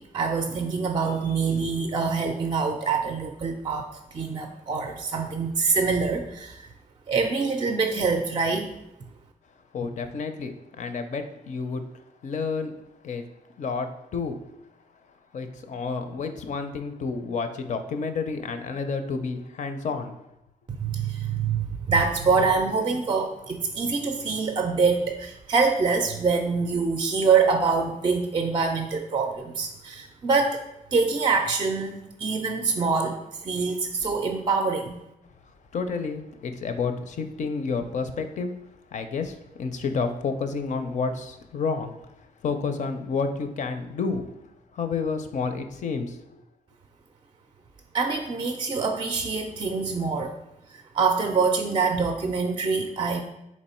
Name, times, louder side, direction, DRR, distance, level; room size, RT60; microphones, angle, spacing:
voice 1, 0.0-3.9 4.1-6.7 7.1-8.7 20.8-30.6 30.9-35.0 47.9-50.3 50.7-53.2, right 4 dB, 30° right, 5 dB, 0.4 m, -25 dB
voice 2, 9.7-11.8 12.2-12.7 13.0-13.2 13.6-14.4 15.3-20.2 35.7-38.5 38.9-42.0 42.4-44.3 44.7-46.4, left 4 dB, 55° left, 8 dB, 0.5 m, -30 dB
4.0 x 3.1 x 4.2 m, 0.86 s
cardioid pair, 105°, 15 cm